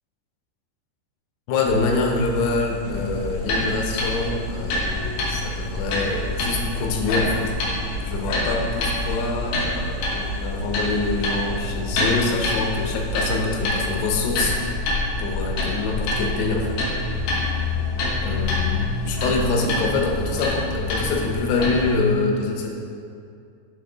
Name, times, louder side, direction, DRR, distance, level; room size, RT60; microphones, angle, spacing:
voice 1, 1.5-14.8 15.2-16.8 18.2-22.7, left 3 dB, 85° left, 0 dB, 2.8 m, -25 dB
sound 1, 1.6-13.7, equal, 70° right, 2.5 m, -34 dB
sound 2, 2.8-21.9, left 2 dB, 70° left, 2.2 m, -27 dB
sound 3, 4.9-10.3, right 2 dB, 90° right, 2.8 m, -46 dB
8.1 x 3.8 x 3.8 m, 2.4 s
omnidirectional pair, 4.7 m